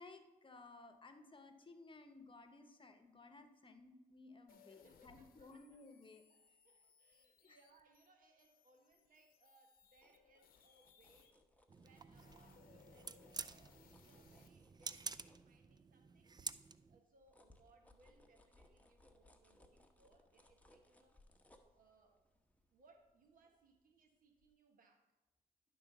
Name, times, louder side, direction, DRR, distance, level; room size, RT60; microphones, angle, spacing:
voice 1, 0.0-6.2 7.4-7.6, left 3 dB, 35° left, 8 dB, 1.0 m, -58 dB
sound 1, 4.5-11.3 11.8-14.5, left 7 dB, 85° left, 0.7 m, -68 dB
voice 2, 4.5-6.0 6.3-11.4 11.8-16.4 16.9-21.2 21.7-22.2 22.7-25.1, right 3 dB, 70° right, 4 dB, 1.3 m, -71 dB
sound 2, 9.8-16.0 16.5-24.0 24.4-24.5, left 1 dB, 10° left, 1.0 m, -69 dB
sound 3, 11.7-17.0, right 5 dB, 30° right, 0.4 m, -50 dB
10.5 x 3.9 x 5.9 m, 1.1 s
cardioid pair, 60°, 15 cm